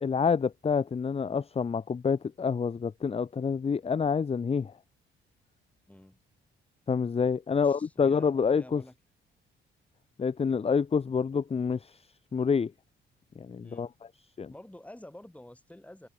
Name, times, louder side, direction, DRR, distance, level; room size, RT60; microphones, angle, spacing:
voice 1, 0.0-4.7 6.9-8.8 10.2-12.0 12.3-12.7 13.4-13.9 14.4-14.5, left 6 dB, 30° left, 0.9 m, -27 dB
voice 2, 5.9-6.2 7.6-8.9 13.6-13.9 14.5-16.1, left 1 dB, 5° left, 6.3 m, -49 dB
open air
cardioid pair, 90°, 20 cm